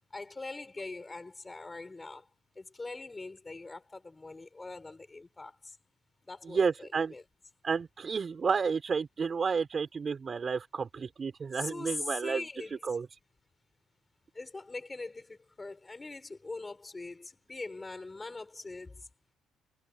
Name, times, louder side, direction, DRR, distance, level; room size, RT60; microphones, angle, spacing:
voice 1, 0.1-2.3 2.6-5.8 6.2-7.2 11.5-12.7 14.3-19.1, left 3 dB, 15° left, 7.5 m, -42 dB
voice 2, 6.4-7.2 7.6-12.4 12.8-13.1, right 5 dB, 25° right, 6.1 m, -31 dB
cardioid pair, 170°, 0 cm